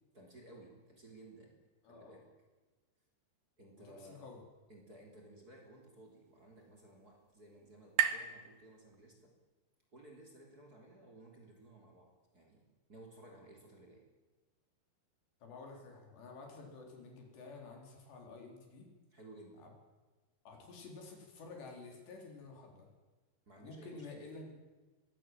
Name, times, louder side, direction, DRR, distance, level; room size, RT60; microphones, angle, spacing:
voice 1, 0.1-1.6 1.9-2.3 3.6-4.2 4.7-9.3 9.9-14.0 19.1-19.7 23.5-24.2, right 2 dB, 25° right, 1 dB, 3.6 m, -57 dB
voice 2, 1.8-2.2 3.8-4.4 15.4-18.9 19.5-19.7 20.5-22.9 23.6-24.6, left 3 dB, 85° left, 1 dB, 6.3 m, -51 dB
sound 1, 5.7-9.4, right 9 dB, 65° right, 2.3 m, -39 dB
22.0 x 17.0 x 9.1 m, 1.3 s
omnidirectional pair, 4.8 m